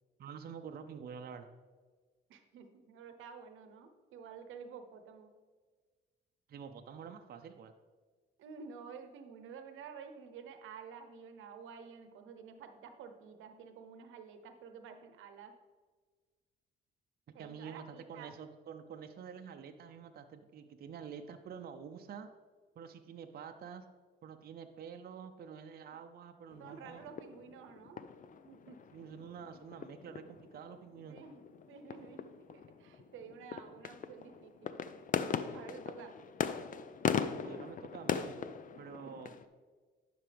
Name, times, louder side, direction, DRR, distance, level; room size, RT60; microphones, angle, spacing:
voice 1, 0.2-1.5 6.5-7.7 17.4-22.3 22.8-23.8 24.2-27.1 28.9-31.2 37.4-38.4 38.8-39.3, right 7 dB, 50° right, 6 dB, 0.6 m, -48 dB
voice 2, 2.3-5.3 8.4-15.5 17.3-18.3 25.9-26.0 26.6-28.0 28.4-28.8 31.1-34.8 35.5-36.1 37.4-37.7, right 6 dB, 85° right, 7 dB, 0.8 m, -51 dB
sound 1, 26.5-39.4, left 7 dB, 45° left, 0.5 m, -40 dB
11.0 x 5.8 x 3.4 m, 1.4 s
cardioid pair, 90°, 20 cm